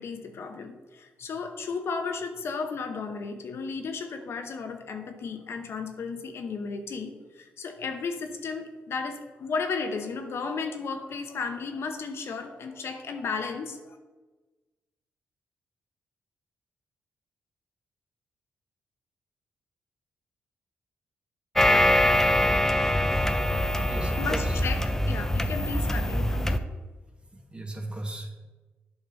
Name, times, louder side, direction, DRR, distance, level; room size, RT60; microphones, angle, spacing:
voice 1, 0.0-14.0 24.2-26.6, left 4 dB, 65° left, 6 dB, 0.8 m, -34 dB
sound 1, 21.6-26.6, left 1 dB, 10° left, 0.5 m, -24 dB
voice 2, 23.9-24.5 27.3-28.3, right 1 dB, 25° right, 3 dB, 1.4 m, -36 dB
8.0 x 5.1 x 4.0 m, 1.2 s
supercardioid pair, 55°, 5 cm